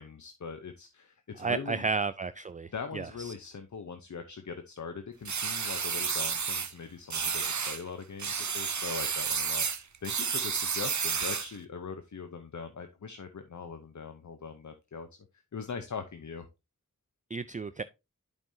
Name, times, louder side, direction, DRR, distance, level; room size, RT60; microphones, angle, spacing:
voice 1, 0.0-1.8 2.7-9.7 10.0-15.1 15.5-16.5, left 5 dB, 65° left, 0.8 m, -41 dB
voice 2, 1.4-3.3 17.3-17.8, right 4 dB, 25° right, 0.4 m, -33 dB
sound 1, 5.2-6.7 7.1-7.8 8.2-11.6, right 6 dB, 65° right, 0.8 m, -31 dB
10.5 x 5.3 x 2.7 m
cardioid pair, 40°, 31 cm